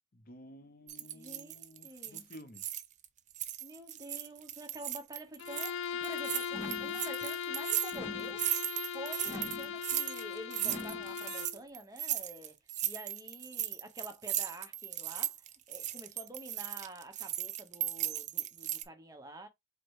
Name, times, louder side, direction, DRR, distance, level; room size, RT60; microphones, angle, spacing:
voice 1, 0.1-2.6, equal, 45° left, 0.7 m, -53 dB
sound 1, 0.9-3.1 3.3-5.7 6.0-18.8, right 12 dB, 35° right, 0.4 m, -36 dB
voice 2, 1.1-2.3 3.6-8.4 8.9-12.5 12.8-19.5, right 1 dB, 20° right, 0.8 m, -48 dB
Bowed string instrument, 5.4-11.6, left 7 dB, 75° left, 0.4 m, -39 dB
sound 2, 6.5-7.1 7.9-8.5 9.2-9.8 10.6-11.2, left 1 dB, 15° left, 0.6 m, -44 dB
4.7 x 2.1 x 4.7 m
head